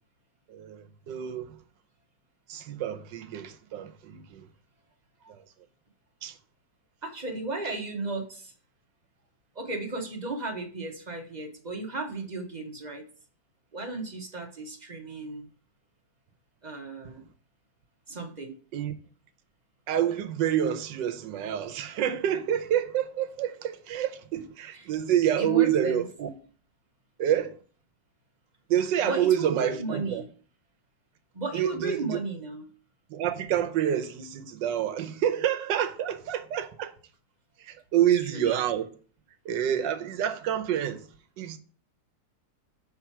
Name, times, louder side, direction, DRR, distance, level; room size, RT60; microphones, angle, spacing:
voice 1, 0.5-1.6 2.5-4.5 5.3-5.4 6.2-6.4 18.7-18.9 19.9-26.3 27.2-27.6 28.7-30.2 31.5-32.2 33.1-36.9 37.6-38.9 39.4-41.1 41.4-41.6, right 10 dB, 75° right, 1.4 m, -28 dB
voice 2, 7.0-8.5 9.5-13.1 13.7-15.5 16.6-17.2 18.1-18.6 24.7-24.9 25.4-26.0 29.0-30.3 31.3-32.7 38.3-38.5, right 3 dB, 35° right, 0.7 m, -34 dB
5.9 x 5.5 x 4.5 m
omnidirectional pair, 2.1 m